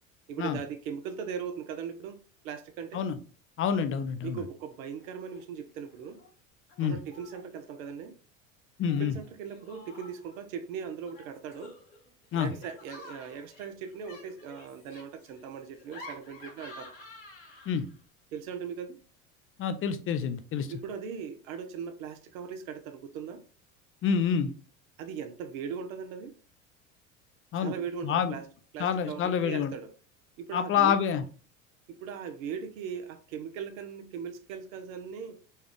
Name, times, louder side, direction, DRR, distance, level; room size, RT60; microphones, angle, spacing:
voice 1, 0.3-3.0 4.2-6.2 6.8-8.2 8.9-11.7 12.3-16.9 18.3-19.0 20.7-23.4 25.0-26.3 27.5-28.5 28.7-29.9 30.4-31.0 31.9-35.4, right 7 dB, 75° right, 0.7 m, -39 dB
voice 2, 3.6-4.4 6.8-7.0 8.8-9.1 12.3-12.5 17.7-17.8 19.6-20.7 24.0-24.5 27.5-27.7 28.0-28.3 28.8-29.7 30.5-31.2, left 7 dB, 30° left, 0.5 m, -27 dB
Laughter, 5.0-5.4 5.7-6.3 6.7-7.5 8.8-10.4 11.0-18.0, left 2 dB, 70° left, 1.7 m, -50 dB
4.3 x 2.4 x 3.3 m
hypercardioid pair, 75°, 41 cm